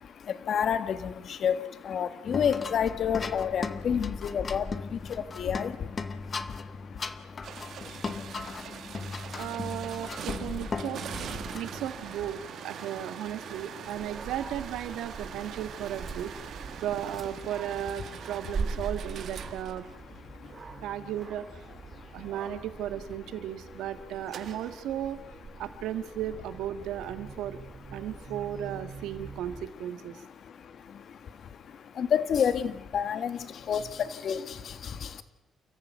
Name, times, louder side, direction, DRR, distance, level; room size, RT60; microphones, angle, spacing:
voice 1, 0.0-9.4 11.5-11.6 13.6-13.7 20.0-20.8 21.9-22.3 27.9-28.2 30.1-35.2, left 8 dB, 60° left, 1.7 m, -32 dB
sound 1, 2.2-12.5, left 4 dB, 35° left, 1.6 m, -37 dB
sound 2, 7.4-20.5 24.3-24.8, right 9 dB, 70° right, 1.5 m, -43 dB
voice 2, 9.4-11.0 11.5-16.5 16.8-19.8 20.8-21.6 22.1-25.2 25.6-27.6 27.9-30.2, right 11 dB, 85° right, 1.6 m, -35 dB
Dog, 13.9-29.6, right 4 dB, 40° right, 2.4 m, -42 dB
29.5 x 14.5 x 9.4 m
cardioid pair, 90°, 0 cm